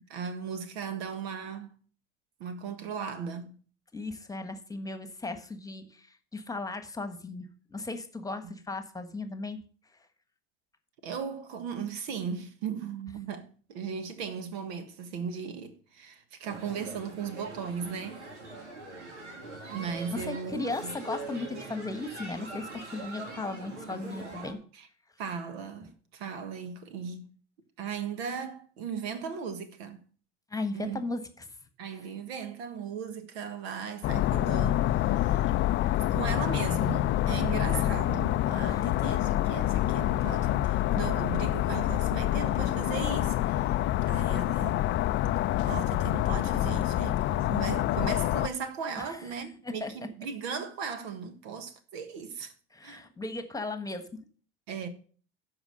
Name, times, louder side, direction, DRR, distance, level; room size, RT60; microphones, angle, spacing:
voice 1, 0.0-1.7 2.4-3.5 8.4-8.5 11.0-18.2 19.7-20.9 24.7-24.9 25.2-27.2 27.8-30.0 30.7-31.0 31.8-35.5 35.8-43.8 44.1-44.9 45.7-52.5 52.8-53.1 54.7-54.9, right 6 dB, 60° right, 1.5 m, -37 dB
voice 2, 3.9-9.6 20.1-24.6 30.5-31.2 37.7-37.9 38.7-38.9 49.0-49.2 49.6-49.9 52.7-54.1, left 2 dB, 10° left, 1.4 m, -36 dB
sound 1, 16.4-24.5, right 2 dB, 75° right, 2.6 m, -42 dB
sound 2, 34.0-48.5, left 14 dB, 35° left, 0.5 m, -27 dB
12.5 x 4.9 x 6.4 m
hypercardioid pair, 80°, 35 cm